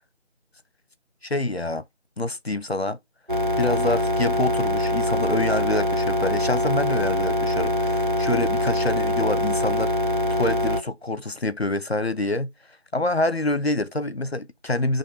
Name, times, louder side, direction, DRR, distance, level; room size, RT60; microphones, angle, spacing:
voice 1, 1.2-1.8 2.2-3.0 3.6-9.9 10.3-12.5 12.9-15.0, left 2 dB, 60° left, 0.7 m, -26 dB
sound 1, 3.3-10.8, left 1 dB, 45° right, 0.7 m, -23 dB
7.0 x 3.0 x 5.6 m
figure-of-eight pair, 180°, 35 cm